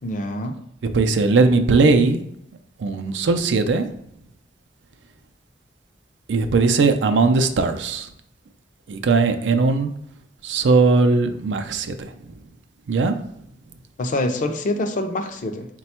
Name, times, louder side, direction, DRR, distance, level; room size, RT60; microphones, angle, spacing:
voice 1, 0.0-0.6 14.0-15.7, left 1 dB, 45° left, 6 dB, 0.5 m, -25 dB
voice 2, 0.9-2.2 2.8-3.9 6.3-8.1 8.9-9.9 10.4-12.1 12.9-13.2, right 3 dB, 85° right, 7 dB, 0.4 m, -19 dB
4.2 x 2.2 x 4.2 m, 0.74 s
head